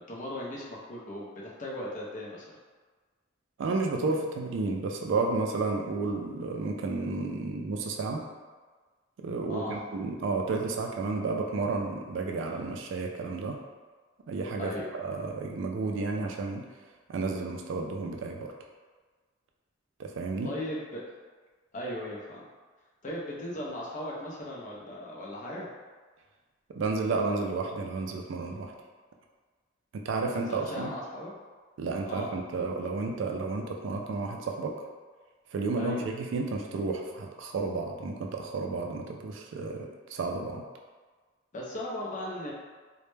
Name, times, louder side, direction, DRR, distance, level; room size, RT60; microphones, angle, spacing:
voice 1, 0.0-2.6 9.5-9.8 14.6-14.9 20.4-21.0 21.7-22.4 23.0-25.7 30.3-31.4 32.1-32.3 35.8-36.0 41.5-42.5, left 1 dB, 40° left, -4 dB, 0.5 m, -37 dB
voice 2, 3.6-8.2 9.2-13.6 14.3-16.7 17.1-18.5 20.0-20.5 26.8-28.7 29.9-30.9 31.8-34.8 35.5-40.6, right 3 dB, 70° right, 2 dB, 0.3 m, -32 dB
2.1 x 2.1 x 3.1 m, 1.4 s
head